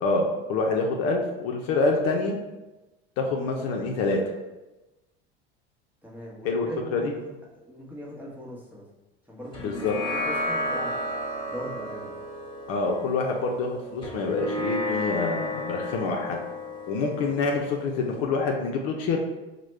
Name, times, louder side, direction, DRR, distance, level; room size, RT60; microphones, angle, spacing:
voice 1, 0.0-2.4 3.2-4.2 6.4-7.1 9.6-10.0 12.7-16.4 16.9-19.2, left 3 dB, 55° left, 1 dB, 0.6 m, -26 dB
voice 2, 6.0-8.8 9.3-11.0 11.5-12.1, equal, 5° right, -5 dB, 1.0 m, -40 dB
sound 1, 9.5-18.2, left 1 dB, 15° left, 1.3 m, -33 dB
4.8 x 2.2 x 3.2 m, 1.1 s
hypercardioid pair, 90°, 30 cm